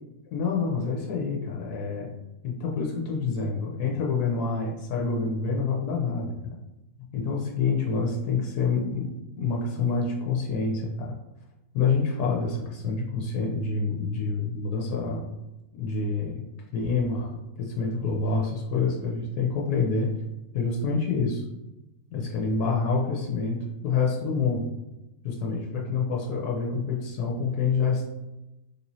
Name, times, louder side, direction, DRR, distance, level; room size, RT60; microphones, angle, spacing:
voice 1, 0.3-2.1 2.4-6.3 7.1-9.1 9.4-11.2 11.7-15.2 15.8-16.3 16.7-20.1 20.5-21.4 22.1-24.7 25.2-28.1, left 4 dB, 90° left, -2 dB, 1.2 m, -27 dB
3.5 x 3.0 x 2.7 m, 0.98 s
omnidirectional pair, 1.6 m